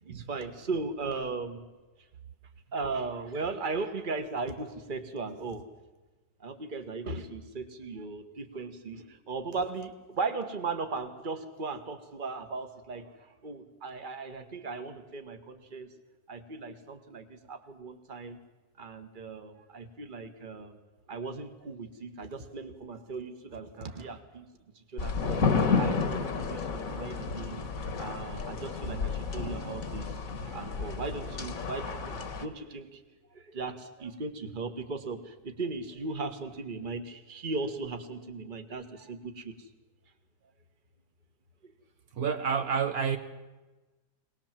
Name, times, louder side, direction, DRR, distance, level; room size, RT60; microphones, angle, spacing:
voice 1, 0.0-1.7 2.7-5.6 6.4-15.9 16.3-18.4 18.8-20.8 21.1-24.5 24.7-25.4 25.8-27.6 28.0-33.0 33.3-39.6 41.6-41.7, right 3 dB, 30° right, 7 dB, 1.6 m, -37 dB
sound 1, 25.0-32.4, left 5 dB, 60° left, 1.9 m, -31 dB
voice 2, 42.1-43.2, right 6 dB, 70° right, 7 dB, 1.5 m, -30 dB
23.0 x 19.0 x 7.5 m, 1.2 s
omnidirectional pair, 1.7 m